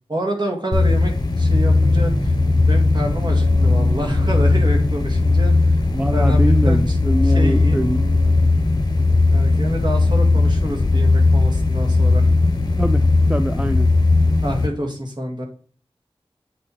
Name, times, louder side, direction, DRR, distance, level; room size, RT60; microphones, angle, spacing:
voice 1, 0.1-2.3 2.7-5.8 6.1-7.0 7.2-7.8 9.3-12.3 14.4-15.4, equal, 45° right, 2.1 m, -27 dB
sound 1, 0.7-14.7, left 3 dB, 45° left, 1.1 m, -17 dB
sound 2, 1.4-8.5, right 1 dB, 70° right, 1.5 m, -29 dB
voice 2, 5.9-8.0 12.8-13.9, right 1 dB, 10° right, 0.4 m, -23 dB
8.3 x 4.4 x 4.2 m
wide cardioid pair, 45°, 10 cm